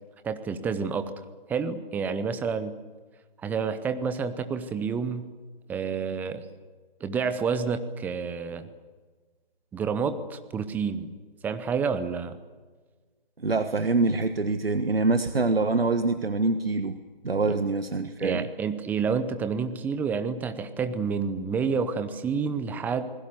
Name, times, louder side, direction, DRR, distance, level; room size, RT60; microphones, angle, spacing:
voice 1, 0.2-1.1 1.5-2.7 3.4-5.3 5.7-6.4 7.0-8.7 9.7-11.1 11.4-12.4 17.4-17.5 18.2-23.1, right 5 dB, 5° right, 10 dB, 0.8 m, -29 dB
voice 2, 13.4-17.0 17.2-18.5, right 3 dB, 85° right, 9 dB, 1.5 m, -25 dB
28.5 x 20.5 x 7.0 m, 1.4 s
figure-of-eight pair, 140°, 29 cm